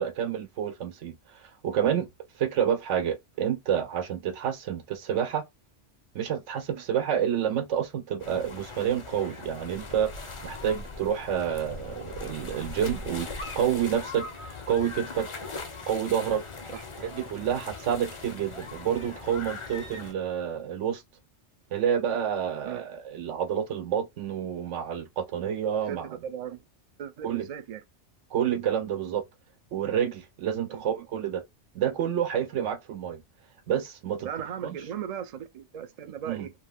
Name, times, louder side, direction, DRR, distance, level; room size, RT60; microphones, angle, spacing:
voice 1, 0.0-2.1 2.4-5.4 6.1-13.3 13.6-14.3 14.7-15.3 15.9-16.4 17.0-21.0 21.7-26.2 27.2-27.5 28.3-29.2 29.7-31.4 31.7-33.2 33.7-34.3 34.6-34.8 36.3-36.5, right 9 dB, 85° right, 1.0 m, -29 dB
sound 1, 8.2-20.1, left 4 dB, 40° left, 0.4 m, -40 dB
voice 2, 25.9-26.6 27.0-27.8 30.7-30.8 34.2-36.5, right 8 dB, 60° right, 0.4 m, -37 dB
2.4 x 2.4 x 3.4 m
omnidirectional pair, 1.2 m